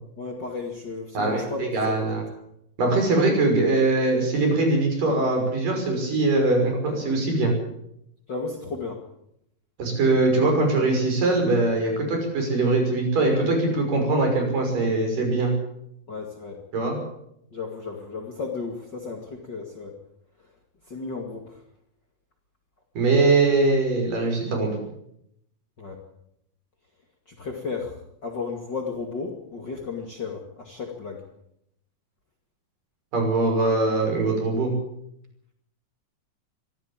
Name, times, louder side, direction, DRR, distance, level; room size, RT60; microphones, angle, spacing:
voice 1, 0.2-2.2 8.3-9.0 16.1-16.6 17.5-20.0 20.9-21.4 25.8-26.0 27.4-31.2, left 4 dB, 35° left, 2 dB, 2.2 m, -34 dB
voice 2, 1.1-2.2 2.8-7.5 9.8-15.5 16.7-17.0 23.0-24.7 33.1-34.7, right 2 dB, 65° right, 2 dB, 7.6 m, -22 dB
23.5 x 14.0 x 8.7 m, 0.77 s
omnidirectional pair, 4.1 m